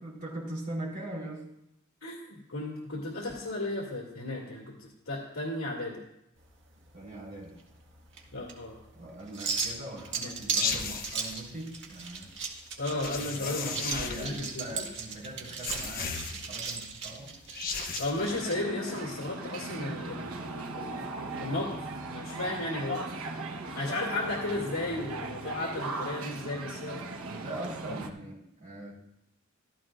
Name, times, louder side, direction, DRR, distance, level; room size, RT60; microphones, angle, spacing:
voice 1, 0.0-1.5 6.9-7.6 8.9-12.3 13.3-17.3 19.8-20.2 27.3-28.9, right 1 dB, 40° right, -4 dB, 4.2 m, -41 dB
voice 2, 2.0-6.0 8.3-8.7 10.2-10.6 12.8-14.9 18.0-21.8 22.1-23.1 23.7-27.1, left 2 dB, 70° left, -3 dB, 2.5 m, -35 dB
sound 1, 6.4-18.6, right 5 dB, 55° right, 1.9 m, -37 dB
sound 2, 10.6-11.4 13.0-14.4 15.6-16.7 17.4-18.3, left 5 dB, 45° left, 1.2 m, -35 dB
sound 3, 18.2-28.1, right 2 dB, 90° right, 1.2 m, -38 dB
15.0 x 14.0 x 2.6 m, 0.81 s
head